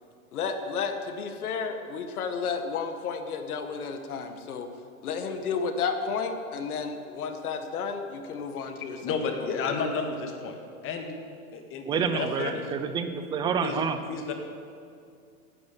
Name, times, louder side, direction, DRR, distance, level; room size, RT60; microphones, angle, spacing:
voice 1, 0.3-4.7 5.0-9.0, left 5 dB, 75° left, 6 dB, 1.9 m, -32 dB
voice 2, 9.0-10.6 10.8-11.1 11.5-12.6 13.6-13.8 14.1-14.3, left 5 dB, 30° left, 4 dB, 1.9 m, -31 dB
voice 3, 11.9-14.0, right 6 dB, 10° right, 9 dB, 0.4 m, -28 dB
17.0 x 9.8 x 7.0 m, 2.4 s
hypercardioid pair, 140°, 44 cm